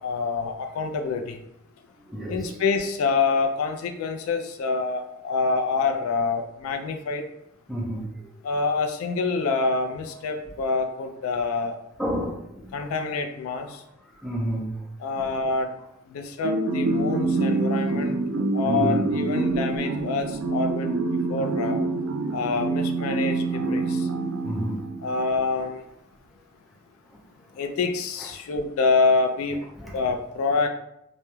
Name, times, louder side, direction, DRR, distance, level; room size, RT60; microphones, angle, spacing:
voice 1, 0.0-1.4 2.3-7.3 8.4-11.8 12.7-13.8 15.0-15.7 16.1-18.2 18.5-20.9 21.3-21.8 22.3-24.1 25.0-25.8 27.6-29.6 29.9-30.7, left 4 dB, 75° left, 5 dB, 0.3 m, -26 dB
voice 2, 2.1-2.6 7.7-8.1 12.0-12.9 14.2-14.8 18.6-19.1 24.4-24.9 29.8-30.0, right 1 dB, ahead, -4 dB, 0.4 m, -30 dB
sound 1, 16.4-25.2, right 3 dB, 80° right, 0.4 m, -26 dB
2.2 x 2.0 x 3.0 m, 0.80 s
head